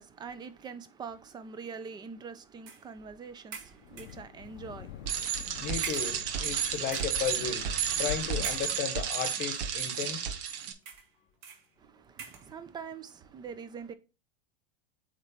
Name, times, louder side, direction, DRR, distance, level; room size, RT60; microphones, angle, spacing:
voice 1, 0.0-5.5 11.8-13.9, right 5 dB, 15° right, 0.4 m, -44 dB
sound 1, 2.7-2.9 3.5-4.3 5.1-5.2 5.8-6.6 6.8-7.3 8.4-9.1 9.9-10.0 10.8-11.2 11.4-11.7 12.2-12.5, right 5 dB, 50° right, 1.6 m, -44 dB
Wind, 3.8-8.8, left 12 dB, 60° left, 0.5 m, -44 dB
Bicycle, 5.1-10.7, right 8 dB, 70° right, 1.1 m, -32 dB
voice 2, 5.6-7.7 8.0-10.2, left 8 dB, 30° left, 0.9 m, -34 dB
8.0 x 3.2 x 4.0 m
supercardioid pair, 145°, 29 cm